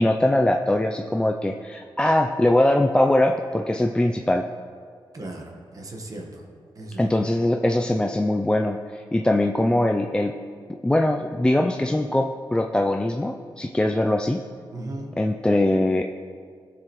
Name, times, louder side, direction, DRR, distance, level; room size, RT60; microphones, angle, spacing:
voice 1, 0.0-4.5 7.0-10.4 10.8-14.4 15.2-16.0, left 1 dB, 10° left, 3 dB, 0.4 m, -22 dB
voice 2, 5.1-6.4 6.8-7.1 14.7-15.1, right 2 dB, 45° right, 1 dB, 1.4 m, -36 dB
15.0 x 6.7 x 3.1 m, 2.1 s
cardioid pair, 80°, 9 cm